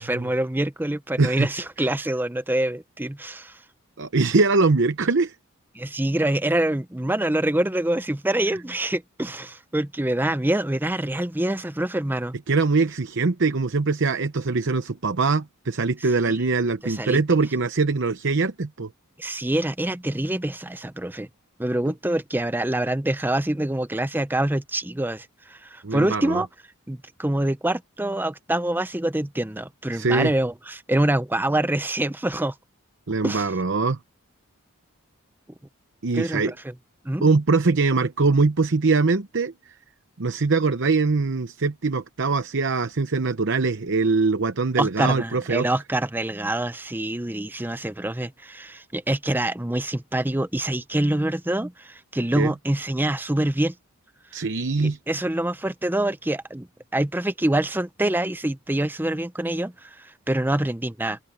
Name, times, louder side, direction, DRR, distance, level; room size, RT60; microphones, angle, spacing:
voice 1, 0.0-3.6 5.7-12.4 16.3-16.4 16.8-17.2 19.2-21.3 21.6-26.5 26.9-32.5 33.2-33.5 36.1-36.7 37.0-37.3 44.8-53.7 54.8-61.2, right 1 dB, 10° right, 0.6 m, -25 dB
voice 2, 4.0-5.3 12.5-18.9 25.8-26.4 29.9-30.3 33.1-34.0 36.0-36.5 37.2-39.5 40.2-45.7 52.4-52.5 54.3-55.0, right 3 dB, 55° right, 0.8 m, -22 dB
head